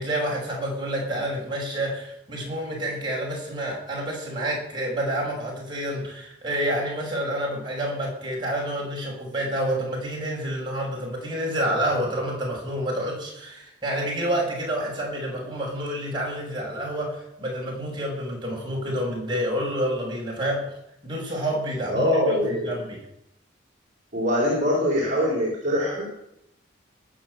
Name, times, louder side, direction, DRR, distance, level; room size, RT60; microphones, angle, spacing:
voice 1, 0.0-20.7 21.0-23.0, right 1 dB, 25° right, -3 dB, 6.1 m, -28 dB
voice 2, 21.9-22.7 24.1-26.1, equal, 40° right, -4 dB, 4.0 m, -23 dB
19.5 x 7.3 x 7.9 m, 0.80 s
head